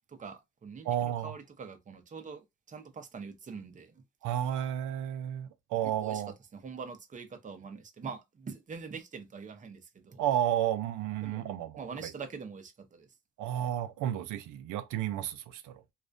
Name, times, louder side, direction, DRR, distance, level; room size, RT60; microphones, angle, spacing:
voice 1, 0.1-4.0 5.8-6.2 6.5-10.2 11.2-11.4 11.8-13.1, right 5 dB, 25° right, 0.6 m, -44 dB
voice 2, 0.8-1.3 4.2-6.3 10.2-11.9 13.4-15.7, right 11 dB, 85° right, 0.5 m, -32 dB
2.4 x 2.1 x 2.4 m
cardioid pair, 90°, 30 cm